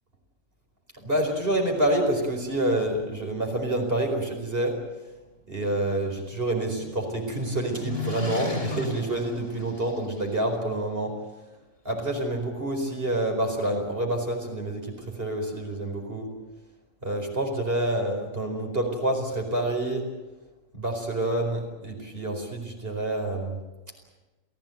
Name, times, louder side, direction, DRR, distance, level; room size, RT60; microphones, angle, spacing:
voice 1, 1.0-4.8 5.5-11.2 11.8-16.3 17.0-20.1 20.7-23.6, right 1 dB, 45° right, 2 dB, 4.9 m, -28 dB
sound 1, 5.8-10.3, left 1 dB, 45° left, 4.4 m, -36 dB
29.0 x 16.5 x 9.2 m, 1.1 s
omnidirectional pair, 1.3 m